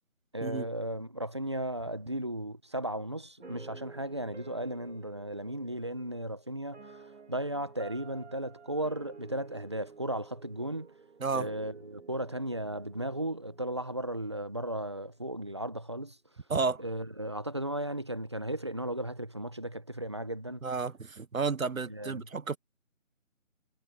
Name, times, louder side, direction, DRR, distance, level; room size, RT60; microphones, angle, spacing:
voice 1, 0.3-6.8 7.3-10.9 11.3-16.2 16.8-20.6 21.9-22.3, right 1 dB, 20° right, 1.3 m, -35 dB
sound 1, 3.4-14.5, right 4 dB, 55° right, 2.3 m, -52 dB
voice 2, 16.5-16.8 20.6-22.6, right 4 dB, 80° right, 1.4 m, -31 dB
figure-of-eight pair, 175°, 40 cm